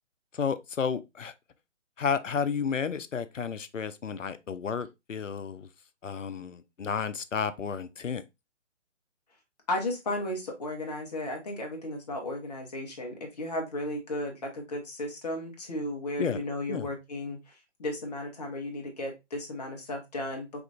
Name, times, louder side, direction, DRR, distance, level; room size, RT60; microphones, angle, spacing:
voice 1, 0.3-1.3 2.0-5.7 6.0-8.2 16.2-16.4 16.7-16.9, left 6 dB, 80° left, 0.6 m, -32 dB
voice 2, 9.7-20.6, left 1 dB, 35° left, 1.0 m, -34 dB
4.8 x 2.6 x 2.3 m
figure-of-eight pair, 140°, 37 cm